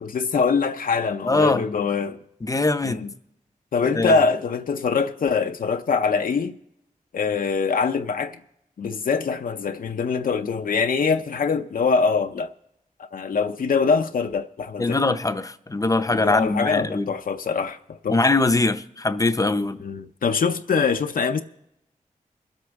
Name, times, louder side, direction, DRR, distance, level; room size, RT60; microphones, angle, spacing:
voice 1, 0.0-2.2 2.8-3.1 3.7-6.5 7.1-8.4 8.8-12.5 13.1-15.0 16.1-17.8 18.0-18.2 19.8-21.4, left 5 dB, 75° left, 0.6 m, -23 dB
voice 2, 1.2-1.7 2.4-3.0 3.9-4.2 14.8-17.1 18.1-19.8, left 2 dB, 25° left, 0.6 m, -22 dB
22.5 x 8.1 x 3.5 m
wide cardioid pair, 95°, 14 cm